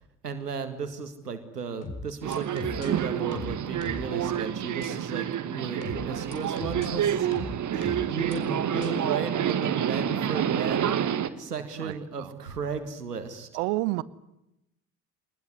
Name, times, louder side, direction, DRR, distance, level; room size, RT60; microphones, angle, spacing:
voice 1, 0.2-7.3 7.7-11.0 11.4-13.5, right 5 dB, 85° right, 9 dB, 1.9 m, -35 dB
sound 1, 1.8-2.9 3.3-4.1 4.8-4.9 5.8-6.9 7.3-8.3 8.8-8.9, left 2 dB, 35° left, 6.3 m, -38 dB
Subway metro underground, 2.2-11.3, right 9 dB, 40° right, 1.9 m, -28 dB
voice 2, 11.7-12.4 13.5-14.0, right 21 dB, 60° right, 19 dB, 1.2 m, -30 dB
24.0 x 20.5 x 9.7 m, 0.87 s
figure-of-eight pair, 55°, 46 cm